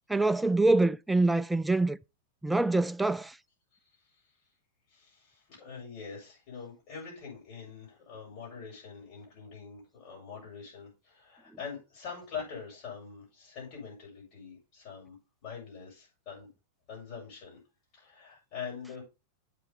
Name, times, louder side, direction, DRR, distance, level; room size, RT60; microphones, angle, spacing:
voice 1, 0.1-2.0 2.4-3.4, right 2 dB, 5° right, 0.4 m, -25 dB
voice 2, 3.7-4.3 4.9-16.5 16.9-17.6 17.9-19.0, left 6 dB, 45° left, 6.7 m, -44 dB
7.8 x 5.9 x 5.7 m
figure-of-eight pair, 90°, 0 cm